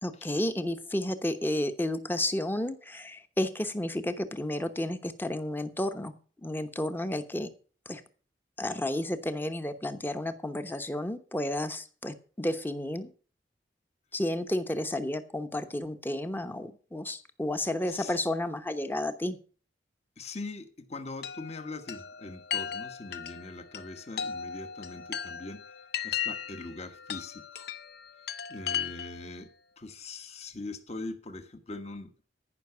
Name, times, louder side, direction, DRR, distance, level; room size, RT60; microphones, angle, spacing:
voice 1, 0.0-6.1 6.4-7.5 7.9-8.0 8.6-13.1 14.1-19.4, left 1 dB, 10° left, 10 dB, 0.9 m, -32 dB
voice 2, 17.9-18.2 20.2-25.6 26.0-27.7 28.5-29.5 29.8-32.1, left 3 dB, 35° left, 9 dB, 1.3 m, -41 dB
Chime, 21.2-29.3, left 8 dB, 60° left, 0.8 m, -37 dB
14.5 x 5.9 x 6.7 m, 0.40 s
head